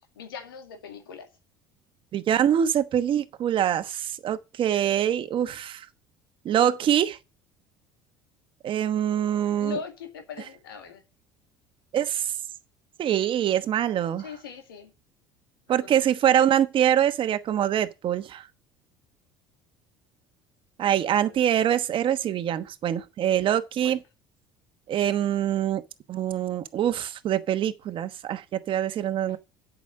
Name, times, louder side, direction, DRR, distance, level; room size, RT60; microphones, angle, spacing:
voice 1, 0.2-1.3 9.6-11.0 14.2-14.9 15.8-15.9 21.0-21.5 23.8-24.0 29.3-29.4, left 7 dB, 85° left, 2.2 m, -40 dB
voice 2, 2.1-5.8 6.4-7.2 8.6-9.8 11.9-12.3 13.0-14.2 15.7-18.5 20.8-24.0 24.9-25.8 26.1-29.4, right 10 dB, 50° right, 1.1 m, -24 dB
8.5 x 6.2 x 7.3 m
hypercardioid pair, 70°, 11 cm